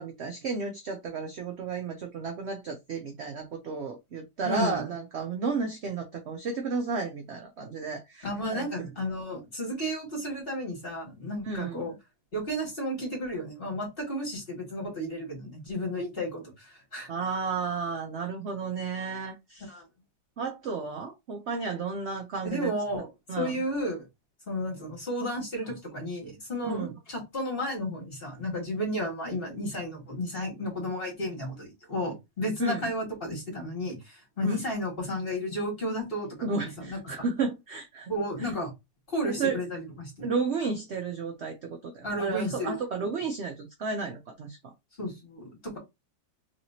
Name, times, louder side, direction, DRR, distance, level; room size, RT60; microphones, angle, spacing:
voice 1, 0.0-8.9 11.4-11.9 17.1-19.7 20.4-22.7 23.3-23.6 26.6-26.9 32.6-32.8 34.4-34.6 36.4-38.1 38.4-38.5 39.3-39.6 40.2-44.7, right 4 dB, 70° right, 0.6 m, -33 dB
voice 2, 4.4-4.8 8.2-11.9 12.3-17.1 19.7-19.8 22.4-23.1 23.4-24.0 24.5-36.3 36.8-37.0 38.1-38.7 39.1-40.3 42.0-43.1 45.0-45.8, equal, 35° left, 1.8 m, -33 dB
3.2 x 2.9 x 2.7 m
omnidirectional pair, 1.8 m